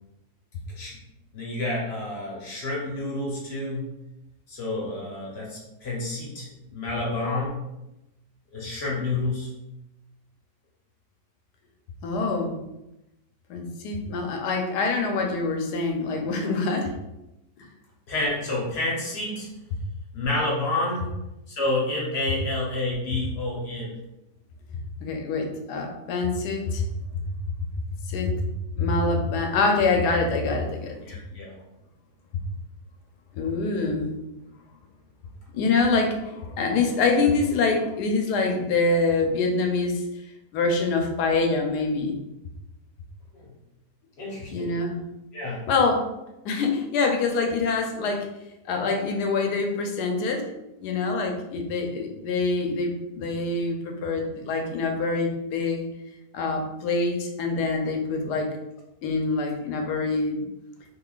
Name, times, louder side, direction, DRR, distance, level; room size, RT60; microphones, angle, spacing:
voice 1, 1.3-3.9 4.5-7.6 8.5-9.5 18.1-19.5 20.1-21.1 21.5-23.9 31.0-31.5 43.3-43.5 44.2-44.7 45.3-45.6, left 2 dB, 50° left, -3 dB, 1.0 m, -29 dB
voice 2, 12.0-12.5 13.5-16.9 25.0-26.8 28.1-28.4 28.8-31.0 33.3-34.1 35.5-40.0 40.5-42.2 44.5-45.0 45.7-46.0 46.4-48.3 48.7-50.5 50.8-55.8 56.3-58.6 59.0-60.4, left 3 dB, 80° left, 3 dB, 1.2 m, -25 dB
3.7 x 2.9 x 2.3 m, 0.93 s
omnidirectional pair, 1.7 m